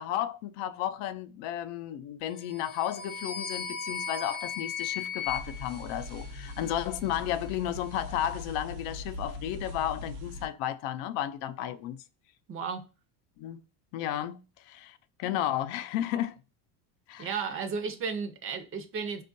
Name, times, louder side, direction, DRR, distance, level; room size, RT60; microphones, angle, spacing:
voice 1, 0.0-12.0 13.4-13.6 13.9-16.4 17.1-17.3, left 11 dB, 75° left, 0.6 m, -33 dB
sound 1, 2.4-6.7, left 6 dB, 25° left, 0.5 m, -37 dB
sound 2, 5.3-10.5, left 2 dB, 80° right, 0.9 m, -41 dB
voice 2, 12.5-12.8 17.2-19.2, right 5 dB, 30° right, 0.5 m, -34 dB
4.3 x 2.4 x 2.5 m
cardioid pair, 135°, 43 cm